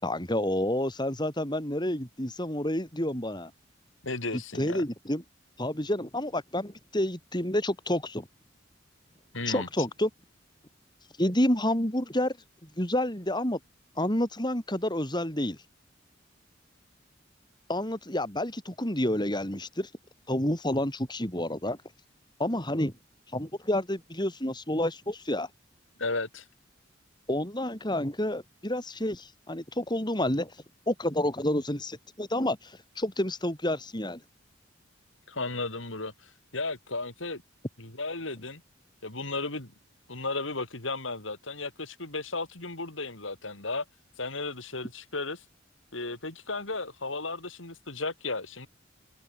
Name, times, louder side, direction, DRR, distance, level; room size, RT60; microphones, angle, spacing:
voice 1, 0.0-3.5 4.6-5.2 5.6-8.3 9.5-10.1 11.2-12.4 12.8-13.6 14.0-15.6 17.7-19.9 20.3-21.8 22.4-22.9 23.3-25.5 27.3-30.5 30.9-34.2, left 1 dB, 25° left, 7.0 m, -29 dB
voice 2, 4.0-4.8 9.3-9.7 26.0-26.5 35.3-37.4 37.8-38.6 39.0-39.7 40.1-43.9 44.2-45.4 45.9-48.7, left 3 dB, 85° left, 5.2 m, -34 dB
head